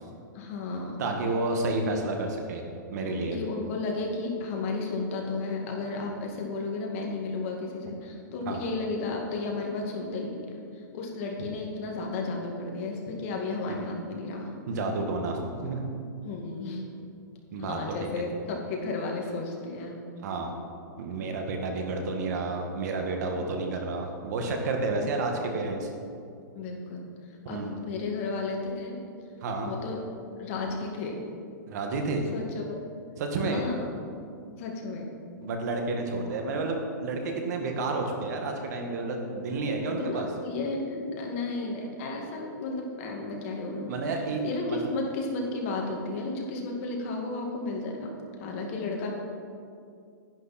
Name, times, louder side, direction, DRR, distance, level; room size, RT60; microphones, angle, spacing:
voice 1, 0.3-1.0 3.0-14.6 16.2-16.9 17.6-20.0 23.3-23.4 26.5-29.0 29.6-30.0 30.4-31.2 32.3-32.8 33.4-34.0 34.6-35.1 40.0-48.1 48.4-49.1, left 3 dB, 45° left, 0 dB, 2.2 m, -33 dB
voice 2, 1.0-2.6 2.9-3.4 8.4-8.6 13.7-13.8 14.7-15.8 17.5-18.0 20.2-20.5 21.0-25.9 27.4-27.7 29.4-29.7 31.7-32.2 33.2-33.6 35.4-40.3 43.9-44.9, right 3 dB, 60° right, 3 dB, 1.9 m, -30 dB
11.5 x 10.5 x 4.3 m, 2.4 s
hypercardioid pair, 150°, 10 cm